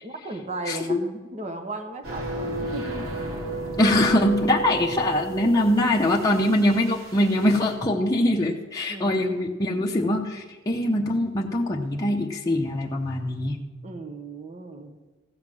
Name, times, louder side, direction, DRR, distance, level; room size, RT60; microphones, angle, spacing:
voice 1, 0.0-3.1 5.4-5.6 8.9-9.2 13.8-15.0, right 2 dB, 35° right, 6 dB, 1.2 m, -36 dB
voice 2, 0.7-1.0 3.8-13.6, left 1 dB, 20° left, -2 dB, 0.8 m, -23 dB
sound 1, 2.0-7.7, right 3 dB, 90° right, 3.7 m, -34 dB
15.0 x 5.8 x 7.5 m, 1.3 s
head